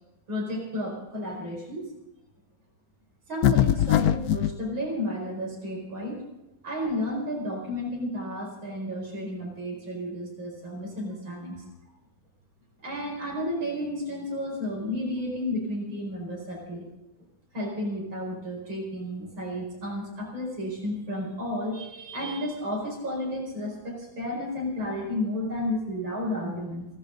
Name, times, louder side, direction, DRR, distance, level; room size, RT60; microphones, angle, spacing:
voice 1, 0.3-1.9 3.3-6.2 6.6-11.7 12.8-16.8 17.5-26.9, left 1 dB, 75° right, -2 dB, 5.6 m, -32 dB
sound 1, 3.4-4.5, left 11 dB, 70° left, 0.9 m, -21 dB
29.0 x 11.5 x 3.9 m, 0.98 s
omnidirectional pair, 2.2 m